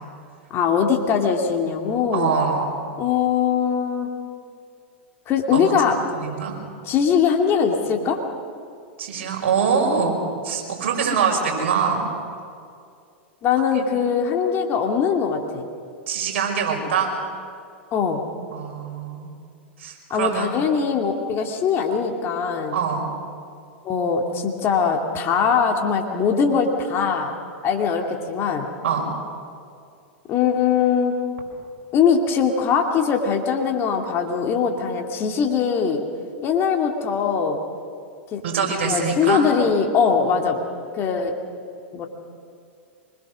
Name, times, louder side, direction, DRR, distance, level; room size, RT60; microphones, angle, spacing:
voice 1, 0.5-2.4 3.0-4.1 5.3-6.0 6.8-8.2 13.4-15.6 17.9-18.2 20.1-22.8 23.8-27.3 27.6-28.7 30.3-31.1 31.9-36.0 36.4-37.6 38.3-38.4 38.8-40.6 40.9-41.3 41.9-42.1, left 6 dB, 35° left, 2 dB, 2.5 m, -21 dB
voice 2, 2.1-2.7 5.5-5.7 6.1-6.6 9.0-12.1 16.1-17.1 18.5-19.3 19.8-20.5 22.7-23.0 28.8-29.1 38.4-39.4, right 6 dB, 70° right, 1 dB, 5.6 m, -23 dB
24.5 x 21.5 x 6.4 m, 2.4 s
hypercardioid pair, 100°, 7 cm